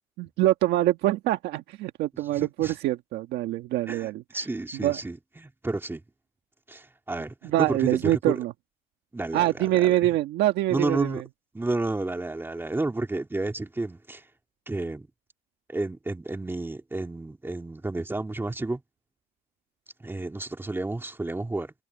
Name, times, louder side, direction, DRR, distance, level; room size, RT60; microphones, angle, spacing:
voice 1, 0.2-4.4 4.7-5.0 7.4-8.5 9.3-11.2, right 15 dB, 85° right, 1.5 m, -25 dB
voice 2, 2.3-2.7 3.9-6.0 6.7-8.4 9.1-9.9 10.7-11.2 11.5-14.2 14.7-15.1 15.7-18.8 20.0-21.7, right 2 dB, 15° right, 2.6 m, -31 dB
cardioid pair, 110°, 17 cm